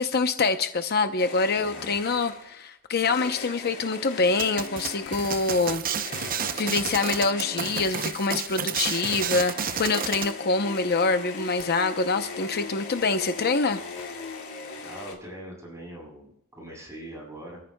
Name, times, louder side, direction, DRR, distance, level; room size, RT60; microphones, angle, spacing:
voice 1, 0.0-5.8 6.5-13.8, left 3 dB, 50° left, 8 dB, 0.8 m, -25 dB
sound 1, 1.2-2.6 3.0-15.1, left 4 dB, 75° left, 2.5 m, -39 dB
voice 2, 1.5-1.9 14.8-17.6, right 1 dB, 15° right, -3 dB, 7.2 m, -42 dB
sound 2, 4.4-10.3, right 7 dB, 40° right, 0.7 m, -31 dB
28.0 x 14.5 x 2.3 m, 0.80 s
head